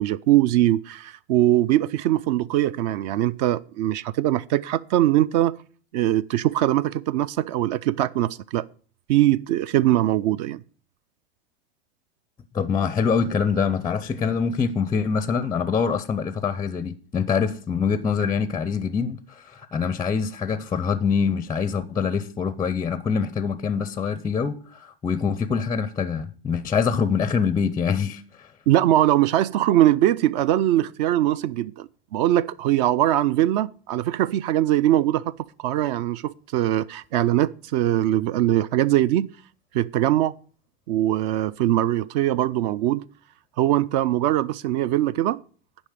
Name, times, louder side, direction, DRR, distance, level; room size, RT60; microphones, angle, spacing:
voice 1, 0.0-5.5 5.9-8.6 9.1-10.6 28.7-35.3 35.6-39.3 39.7-40.3 40.9-43.0 43.6-45.4, right 13 dB, 45° right, 0.4 m, -21 dB
voice 2, 12.5-28.5, left 6 dB, 10° left, 0.5 m, -25 dB
10.5 x 5.2 x 6.6 m
hypercardioid pair, 115°, 32 cm